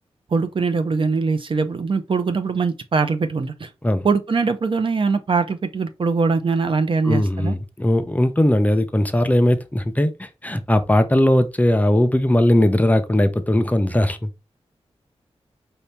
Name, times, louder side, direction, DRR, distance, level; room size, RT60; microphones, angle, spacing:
voice 1, 0.3-3.7 4.0-7.6, right 4 dB, 55° right, 0.7 m, -22 dB
voice 2, 7.0-14.3, left 1 dB, 15° left, 0.6 m, -19 dB
5.5 x 2.8 x 3.3 m
wide cardioid pair, 80°, 11 cm